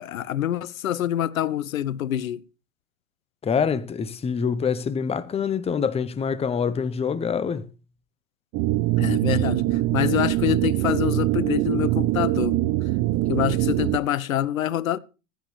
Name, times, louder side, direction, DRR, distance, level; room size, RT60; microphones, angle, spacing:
voice 1, 0.0-2.4 9.0-12.6 13.3-15.0, left 11 dB, 80° left, 0.8 m, -26 dB
voice 2, 3.4-7.7, left 6 dB, 15° left, 0.9 m, -25 dB
sound 1, 8.5-14.0, right 16 dB, 40° right, 0.8 m, -23 dB
15.5 x 10.5 x 3.2 m
hypercardioid pair, 105°, 40 cm